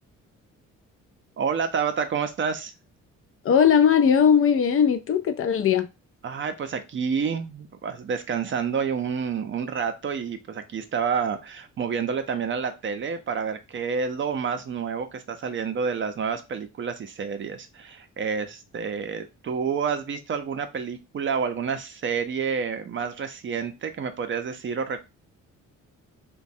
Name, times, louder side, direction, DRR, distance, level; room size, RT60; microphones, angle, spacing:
voice 1, 1.4-2.7 6.2-25.0, right 6 dB, 40° right, 0.5 m, -29 dB
voice 2, 3.4-5.9, left 7 dB, 45° left, 0.4 m, -19 dB
3.0 x 2.2 x 2.6 m
cardioid pair, 90°, 30 cm